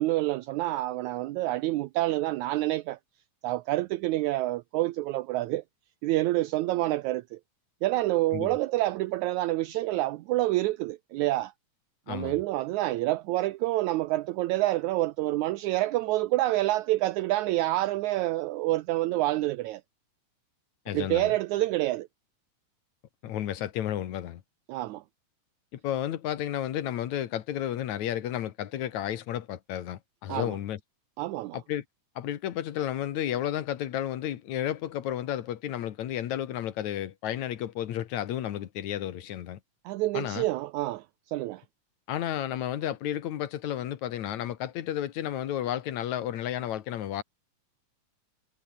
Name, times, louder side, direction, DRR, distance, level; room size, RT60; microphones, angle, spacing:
voice 1, 0.0-3.0 3.4-5.6 6.0-7.4 7.8-11.5 12.1-19.8 20.9-22.1 24.7-25.0 30.3-30.6 31.2-31.6 39.9-41.6, right 17 dB, 75° right, 1.9 m, -27 dB
voice 2, 20.9-21.3 23.2-24.4 25.7-30.8 31.5-31.8 32.2-39.6 40.1-40.5 42.1-47.2, left 11 dB, 65° left, 2.5 m, -32 dB
omnidirectional pair, 3.7 m